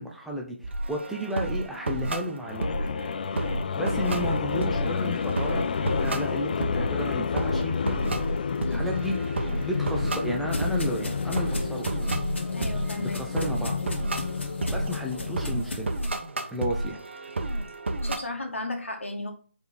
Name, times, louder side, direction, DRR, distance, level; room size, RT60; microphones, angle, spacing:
voice 1, 0.0-2.7 3.7-7.8 8.6-11.9 13.0-13.8 14.7-15.9 16.5-17.0 17.4-17.6, equal, ahead, -1 dB, 0.9 m, -33 dB
sound 1, 0.6-18.2, right 2 dB, 65° right, 1.5 m, -32 dB
sound 2, 2.4-15.7, left 6 dB, 45° left, 0.5 m, -30 dB
sound 3, 9.6-16.2, left 1 dB, 65° left, 2.9 m, -38 dB
voice 2, 12.5-13.7 18.0-19.3, left 2 dB, 85° left, 2 dB, 2.4 m, -35 dB
5.3 x 5.1 x 6.0 m, 0.40 s
figure-of-eight pair, 150°, 7 cm